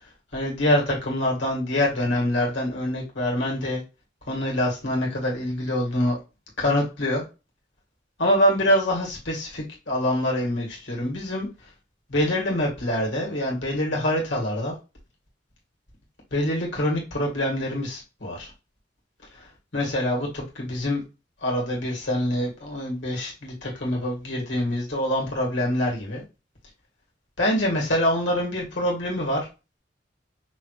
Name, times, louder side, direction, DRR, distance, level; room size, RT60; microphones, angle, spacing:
voice 1, 0.3-3.8 4.3-6.2 6.6-7.2 8.2-11.5 12.1-14.8 16.3-18.5 19.3-21.0 21.4-26.2 27.4-29.5, left 1 dB, 75° left, -2 dB, 1.8 m, -25 dB
5.5 x 2.5 x 3.1 m, 0.28 s
head